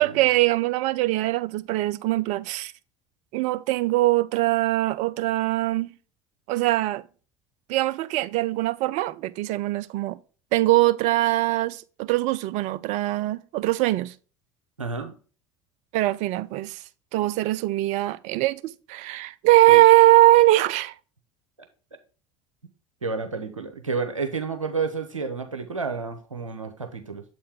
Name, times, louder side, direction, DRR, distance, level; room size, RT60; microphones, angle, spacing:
voice 1, 0.0-2.7 3.3-5.9 6.5-7.0 7.7-10.2 10.5-14.1 15.9-16.8 17.1-20.9, right 18 dB, 45° right, 0.4 m, -21 dB
voice 2, 14.8-15.1 19.7-19.8 23.0-27.2, right 4 dB, 85° right, 0.8 m, -30 dB
7.4 x 4.2 x 3.5 m
figure-of-eight pair, 65°, 16 cm